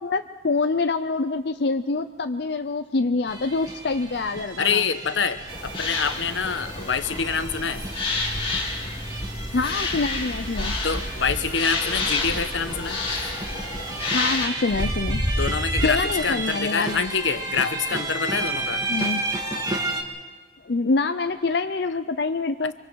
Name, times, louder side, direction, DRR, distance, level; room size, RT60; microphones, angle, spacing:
voice 1, 0.0-4.8 9.5-10.7 14.1-15.2 15.8-17.1 18.9-19.2 20.6-22.7, left 3 dB, 65° left, 8 dB, 0.6 m, -25 dB
sound 1, 3.3-20.0, right 1 dB, 20° right, 1.8 m, -31 dB
voice 2, 4.6-7.9 10.8-13.0 15.4-18.8 22.6-22.7, left 6 dB, 90° left, 10 dB, 1.1 m, -26 dB
sound 2, 5.5-14.5, left 3 dB, 30° left, 3.2 m, -30 dB
sound 3, 7.3-8.3 9.2-10.2 11.0-12.0 12.8-13.7, right 2 dB, 45° right, 6.9 m, -49 dB
25.0 x 24.5 x 4.7 m, 1.4 s
head